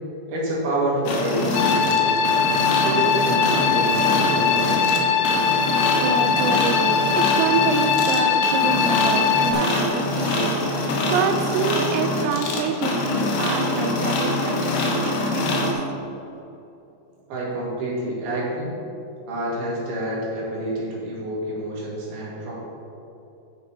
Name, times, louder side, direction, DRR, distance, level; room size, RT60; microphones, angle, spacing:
voice 1, 0.3-2.5 2.8-5.1 17.3-18.7 19.3-22.5, right 1 dB, 65° right, -5 dB, 3.8 m, -28 dB
sound 1, 1.1-15.7, left 2 dB, 70° left, 2.8 m, -24 dB
sound 2, 1.5-9.5, left 6 dB, 90° left, 2.0 m, -21 dB
voice 2, 5.6-15.0 15.3-15.7, right 6 dB, 85° right, 6 dB, 2.3 m, -27 dB
9.5 x 6.7 x 4.4 m, 2.8 s
omnidirectional pair, 5.0 m